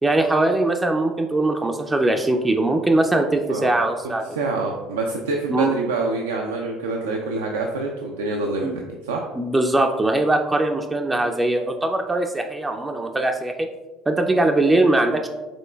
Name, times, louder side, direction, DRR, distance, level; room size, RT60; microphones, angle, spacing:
voice 1, 0.0-4.2 5.5-5.7 8.6-8.8 9.4-13.7 14.1-15.3, right 2 dB, 15° right, 3 dB, 0.3 m, -21 dB
voice 2, 4.0-8.7 9.0-9.3, right 3 dB, 90° right, 1 dB, 0.3 m, -26 dB
5.1 x 3.7 x 2.2 m, 1.2 s
hypercardioid pair, 70°, 0 cm